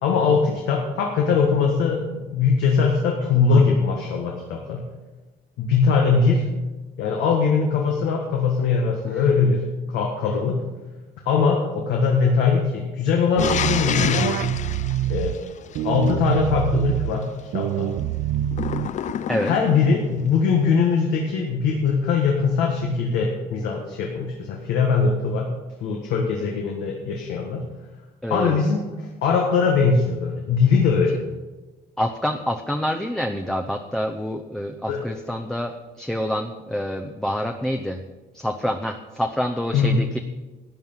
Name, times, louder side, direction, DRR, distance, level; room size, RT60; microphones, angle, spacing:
voice 1, 0.0-4.8 5.6-6.4 7.0-10.6 11.2-14.4 15.1-15.3 15.8-17.3 17.5-17.9 19.4-25.5 25.8-27.6 28.3-31.1 34.9-35.0 39.7-40.0, left 5 dB, 85° left, 0 dB, 1.6 m, -21 dB
sound 1, 13.4-16.1 18.5-19.9, left 9 dB, 45° left, 0.5 m, -28 dB
sound 2, 13.4-15.3 15.7-17.1 17.5-19.1, right 12 dB, 65° right, 0.6 m, -25 dB
voice 2, 28.2-28.6 32.0-38.0 38.3-40.2, equal, 5° left, 3 dB, 0.7 m, -27 dB
13.0 x 9.3 x 5.6 m, 1.2 s
cardioid pair, 110°, 17 cm